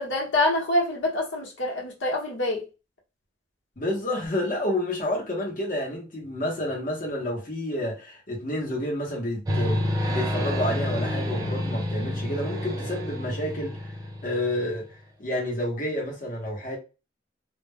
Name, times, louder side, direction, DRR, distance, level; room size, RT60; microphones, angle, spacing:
voice 1, 0.0-2.6, left 2 dB, 85° left, 1.0 m, -26 dB
voice 2, 3.8-13.9 14.2-16.8, left 1 dB, 45° left, 0.8 m, -30 dB
sound 1, 9.4-14.9, left 1 dB, 20° right, 0.4 m, -29 dB
2.2 x 2.1 x 3.3 m
head